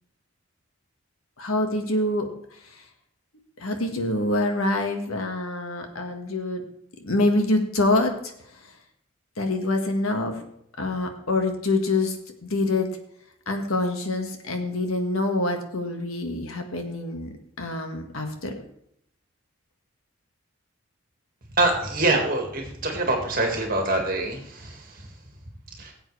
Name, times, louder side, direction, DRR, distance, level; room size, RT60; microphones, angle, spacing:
voice 1, 1.4-2.3 2.6-2.8 3.6-6.6 7.0-8.3 9.4-10.5 10.8-12.2 12.4-12.9 13.5-18.6, left 2 dB, 85° left, 4 dB, 1.6 m, -26 dB
voice 2, 21.6-25.1 25.8-25.9, right 2 dB, 40° right, 1 dB, 2.0 m, -25 dB
17.5 x 7.9 x 3.3 m, 0.73 s
head